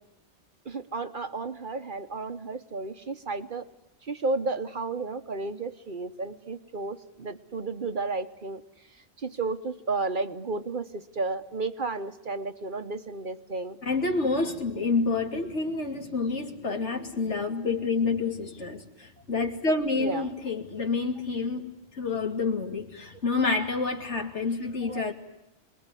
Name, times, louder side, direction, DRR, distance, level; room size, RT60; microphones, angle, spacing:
voice 1, 0.6-3.6 4.0-8.6 9.2-13.8 20.0-20.3 24.8-25.1, right 3 dB, 45° right, 10 dB, 1.3 m, -32 dB
voice 2, 13.8-25.1, left 3 dB, 75° left, 4 dB, 3.0 m, -28 dB
27.0 x 21.0 x 9.9 m, 0.91 s
omnidirectional pair, 1.2 m